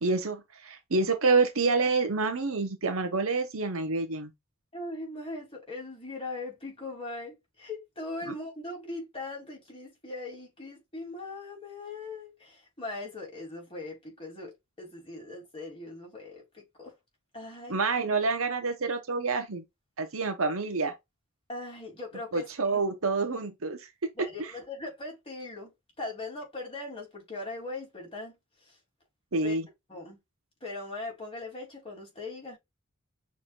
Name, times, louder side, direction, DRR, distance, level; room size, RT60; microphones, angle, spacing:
voice 1, 0.0-4.3 8.3-8.4 17.7-19.6 20.0-20.9 22.3-23.8 29.3-29.7, right 3 dB, 85° right, 1.1 m, -27 dB
voice 2, 4.7-14.5 14.8-16.9 17.3-17.8 21.5-22.8 24.1-25.7 26.0-28.4 28.6-28.7 29.4-29.5 29.9-30.2 30.6-32.6, left 2 dB, 25° left, 3.2 m, -40 dB
6.2 x 3.4 x 2.5 m
head